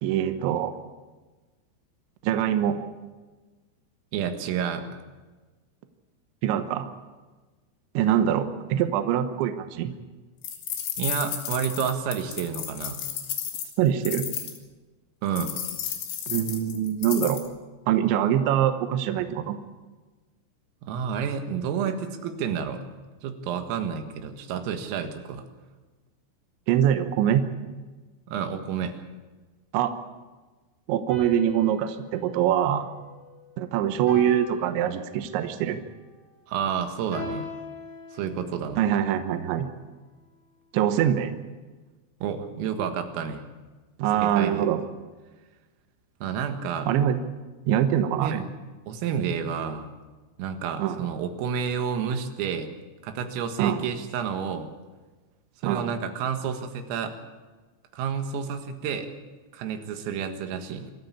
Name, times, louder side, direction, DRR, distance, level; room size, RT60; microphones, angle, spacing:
voice 1, 0.0-0.7 2.2-2.8 6.4-6.9 7.9-9.9 13.8-14.3 16.3-17.4 17.9-19.6 26.7-27.4 29.7-29.9 30.9-32.9 33.6-35.8 38.8-39.7 40.7-41.4 44.0-44.8 46.9-47.2 47.7-48.4 50.8-51.0 53.6-53.9 55.6-55.9, right 10 dB, 75° right, 8 dB, 3.2 m, -24 dB
voice 2, 4.1-5.0 11.0-13.1 15.2-15.6 20.8-22.8 23.2-25.5 28.3-29.0 36.5-37.5 38.1-38.8 42.2-43.4 44.2-44.7 46.2-46.9 48.2-48.5 48.9-49.9 50.4-52.7 53.0-54.7 55.6-57.2 57.9-59.1 59.5-60.9, right 7 dB, 90° right, 6 dB, 4.3 m, -30 dB
sound 1, 10.4-14.6 15.4-17.5, left 9 dB, 85° left, 4.9 m, -33 dB
sound 2, 31.1-33.5 34.1-35.6 37.1-38.8, left 3 dB, 60° left, 9.1 m, -40 dB
26.0 x 13.5 x 8.5 m, 1.3 s
omnidirectional pair, 5.8 m